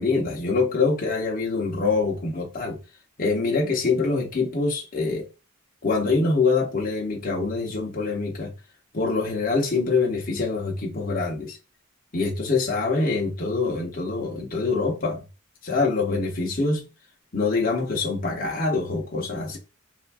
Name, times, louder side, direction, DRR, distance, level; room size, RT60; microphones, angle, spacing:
voice 1, 0.0-2.8 3.2-5.3 5.8-8.5 8.9-11.6 12.1-15.2 15.6-16.9 17.3-19.6, left 3 dB, 40° left, 0.7 m, -25 dB
3.9 x 2.5 x 2.3 m
head